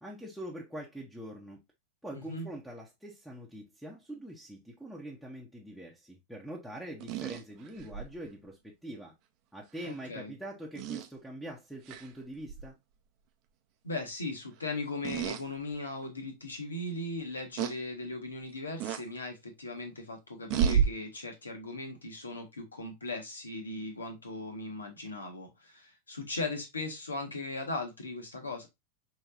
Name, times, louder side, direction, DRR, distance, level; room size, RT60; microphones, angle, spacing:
voice 1, 0.0-1.6 2.0-9.1 9.5-12.8, right 1 dB, ahead, 1.0 m, -44 dB
voice 2, 2.1-2.5 9.8-10.3 13.8-28.7, left 2 dB, 75° left, 1.4 m, -38 dB
sound 1, 7.0-8.1 9.8-9.9 10.8-11.1 11.9-12.1 12.5-12.7 15.0-15.4 16.0-16.1 17.6-17.8 18.8-19.0 20.5-20.9, right 8 dB, 40° right, 0.7 m, -30 dB
5.5 x 3.1 x 2.4 m
figure-of-eight pair, 90°, 0 cm